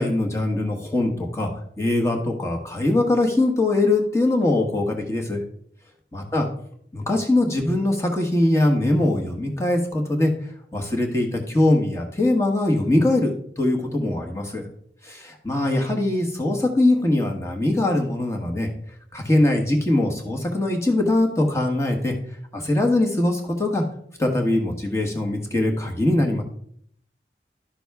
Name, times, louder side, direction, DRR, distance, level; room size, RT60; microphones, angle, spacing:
voice 1, 0.0-5.4 6.1-6.5 6.9-10.3 10.7-14.7 15.0-18.7 19.1-22.1 22.5-23.8 24.2-26.4, left 2 dB, 15° left, 2 dB, 1.3 m, -22 dB
11.5 x 6.1 x 3.5 m, 0.67 s
head